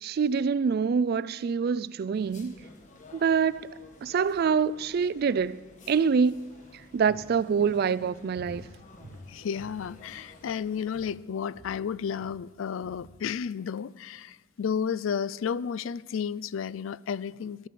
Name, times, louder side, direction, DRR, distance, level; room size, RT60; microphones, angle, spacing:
voice 1, 0.0-2.6 3.1-3.7 4.0-5.6 5.9-6.4 6.9-8.7, right 6 dB, 50° right, 0.3 m, -25 dB
sound 1, 2.1-11.2, left 2 dB, 40° left, 1.4 m, -53 dB
Walk footsteps, 6.3-10.6 10.9-11.3 11.5-13.9 14.2-14.3, equal, 70° right, 1.2 m, -50 dB
voice 2, 9.3-17.7, left 7 dB, 75° left, 0.4 m, -32 dB
12.5 x 8.8 x 6.7 m
head